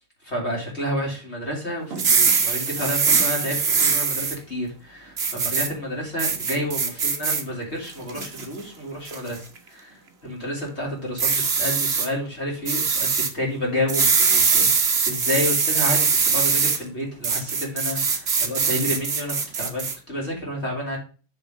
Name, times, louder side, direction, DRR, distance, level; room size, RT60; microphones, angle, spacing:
voice 1, 0.2-9.4 9.7-9.9 10.2-21.0, left 1 dB, 30° left, -2 dB, 3.6 m, -30 dB
sound 1, 1.9-4.4 5.2-5.7 6.2-7.4 7.9-8.5 9.1-9.4 11.2-12.1 12.7-13.3 13.9-16.8 17.2-19.9, right 5 dB, 35° right, 1.2 m, -22 dB
7.0 x 5.7 x 5.2 m, 0.36 s
omnidirectional pair, 2.2 m